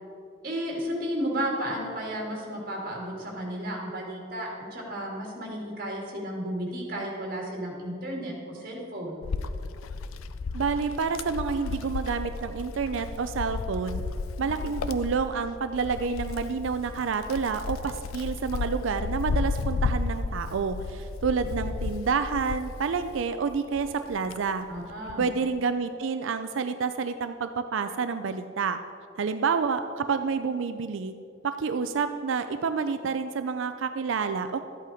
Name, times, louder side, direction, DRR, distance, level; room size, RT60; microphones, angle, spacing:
voice 1, 0.4-9.2 24.7-25.3, equal, 45° right, -1 dB, 2.4 m, -33 dB
Wind, 9.2-23.3 23.8-25.3, left 4 dB, 85° left, 0.5 m, -33 dB
voice 2, 10.5-14.0 14.4-24.6 25.2-28.8 29.2-31.1 31.4-34.6, right 5 dB, 70° right, 9 dB, 0.4 m, -29 dB
12.5 x 8.5 x 4.9 m, 2.6 s
head